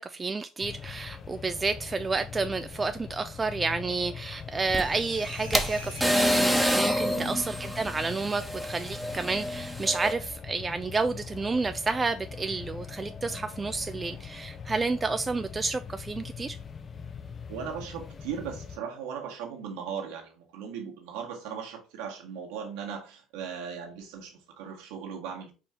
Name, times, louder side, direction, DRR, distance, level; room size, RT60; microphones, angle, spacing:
voice 1, 0.0-16.6, right 3 dB, 25° right, 0.4 m, -30 dB
sound 1, 0.6-18.8, left 6 dB, 35° left, 0.8 m, -42 dB
sound 2, 4.5-7.3, right 1 dB, 90° right, 1.6 m, -48 dB
sound 3, 4.7-10.1, equal, ahead, 1.1 m, -28 dB
voice 2, 7.1-7.5 17.5-25.5, right 7 dB, 65° right, 1.7 m, -38 dB
4.9 x 4.7 x 4.5 m
figure-of-eight pair, 55°, 0 cm